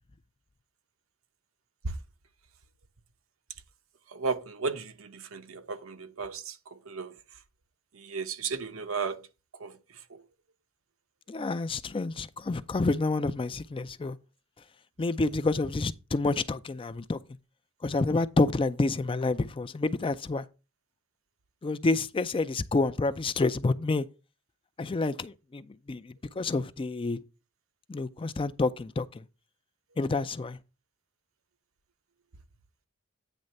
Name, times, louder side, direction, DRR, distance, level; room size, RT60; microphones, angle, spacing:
voice 1, 4.1-7.4 7.9-9.3 9.5-10.2, right 4 dB, 75° right, 0.9 m, -35 dB
voice 2, 11.3-14.2 15.0-17.2 17.8-20.5 21.6-24.1 24.8-27.2 27.9-29.2 30.0-30.6, left 3 dB, 25° left, 0.4 m, -28 dB
9.1 x 3.2 x 6.4 m
head